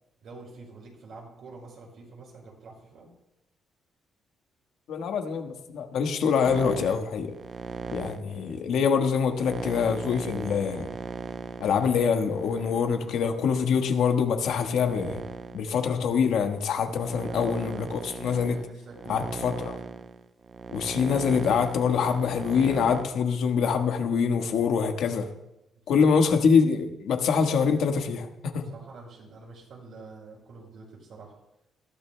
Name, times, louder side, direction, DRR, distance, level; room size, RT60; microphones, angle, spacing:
voice 1, 0.2-3.1 16.8-17.8 18.4-19.6 25.9-26.2 27.3-27.6 28.6-31.3, right 3 dB, 70° right, -1 dB, 5.6 m, -46 dB
voice 2, 4.9-7.3 7.9-10.9 11.6-15.2 15.5-18.6 19.1-19.8 20.7-25.3 25.9-28.6, left 6 dB, 75° left, 5 dB, 1.3 m, -25 dB
sound 1, 6.5-13.8 14.4-23.0, right 5 dB, 45° right, 0.6 m, -38 dB
19.5 x 14.0 x 2.2 m, 0.90 s
cardioid pair, 90°, 0 cm